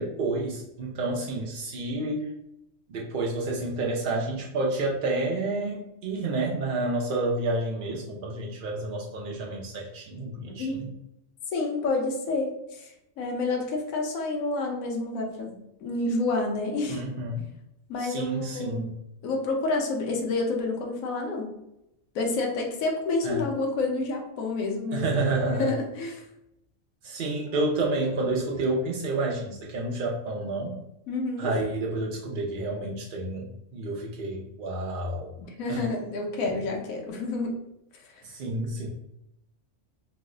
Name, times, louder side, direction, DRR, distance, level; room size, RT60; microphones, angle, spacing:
voice 1, 0.0-2.3 2.9-10.9 16.9-17.4 18.0-19.0 23.2-23.5 24.9-25.7 27.0-30.8 31.4-35.3 35.7-35.9 38.2-38.9, right 2 dB, 70° right, -2 dB, 0.5 m, -29 dB
voice 2, 10.5-10.8 11.5-17.0 17.9-18.9 19.2-21.5 22.1-25.0 25.5-26.3 31.1-31.5 35.4-37.5 37.9-38.2, left 3 dB, 80° left, 1 dB, 1.1 m, -29 dB
3.0 x 2.0 x 3.7 m, 0.85 s
omnidirectional pair, 1.4 m